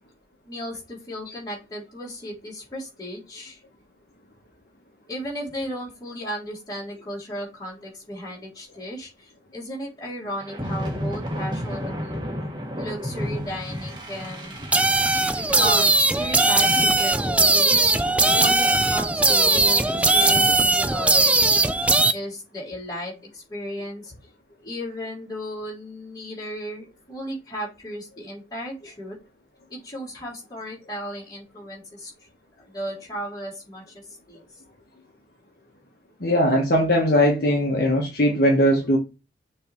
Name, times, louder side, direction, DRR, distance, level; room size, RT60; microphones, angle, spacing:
voice 1, 0.4-3.6 5.1-12.2 12.8-14.6 15.4-17.9 18.3-21.4 22.1-24.1 24.6-29.2 29.7-32.1 32.6-33.8 34.3-34.4, equal, 20° left, 3.5 m, -35 dB
sound 1, 10.4-21.0, equal, 25° right, 1.5 m, -34 dB
sound 2, 14.7-22.1, right 2 dB, 5° right, 0.3 m, -19 dB
voice 2, 36.2-39.0, equal, 55° left, 1.2 m, -19 dB
6.6 x 3.4 x 4.4 m
head